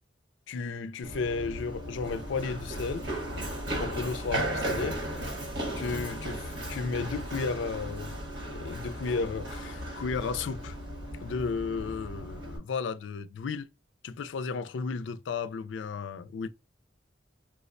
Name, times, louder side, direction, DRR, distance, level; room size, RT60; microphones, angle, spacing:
voice 1, 0.5-3.1 3.8-5.0 5.8-10.8 11.2-13.7 14.0-16.5, left 4 dB, 75° left, 0.4 m, -34 dB
Run, 1.0-12.6, right 1 dB, 75° right, 1.3 m, -36 dB
4.6 x 2.1 x 2.5 m
head